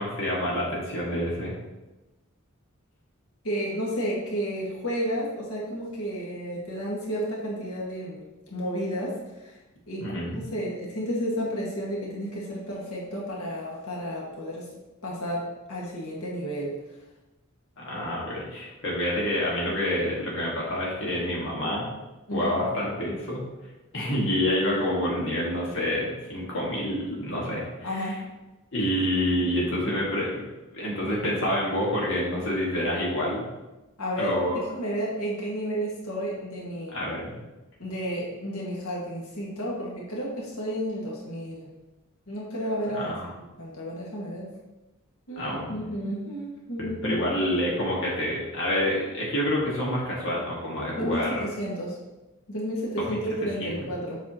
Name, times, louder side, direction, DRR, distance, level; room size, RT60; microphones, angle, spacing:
voice 1, 0.0-1.5 10.0-10.4 17.8-21.9 22.3-23.4 23.9-28.1 28.7-30.4 30.7-33.5 34.2-34.6 36.9-37.4 42.9-43.1 45.4-45.8 46.8-51.4 53.0-53.2 53.6-53.7, left 1 dB, 60° left, -5 dB, 1.8 m, -28 dB
voice 2, 3.4-9.5 9.9-14.7 15.0-16.8 22.3-22.6 27.8-28.3 34.0-34.4 34.7-37.0 37.8-41.7 42.3-43.1 43.6-44.5 45.3-47.2 51.0-52.0 52.5-54.2, equal, 85° left, -5 dB, 1.8 m, -32 dB
7.5 x 5.8 x 3.0 m, 1.0 s
head